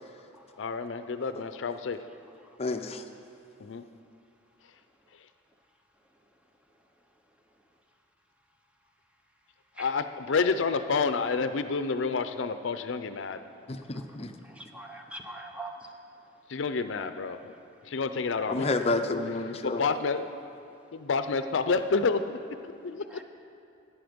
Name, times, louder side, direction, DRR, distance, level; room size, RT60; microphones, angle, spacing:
voice 1, 0.6-2.0 3.6-3.8 9.8-13.4 16.5-17.5 17.8-18.7 19.6-20.3 20.9-22.4 22.6-23.0, left 4 dB, 75° left, 10 dB, 0.5 m, -29 dB
voice 2, 2.6-3.0 13.7-14.3 18.5-19.8, left 2 dB, 30° left, 6 dB, 0.6 m, -29 dB
voice 3, 14.6-15.8 23.2-23.3, right 2 dB, 5° right, 3 dB, 0.8 m, -41 dB
14.0 x 10.0 x 5.2 m, 2.5 s
head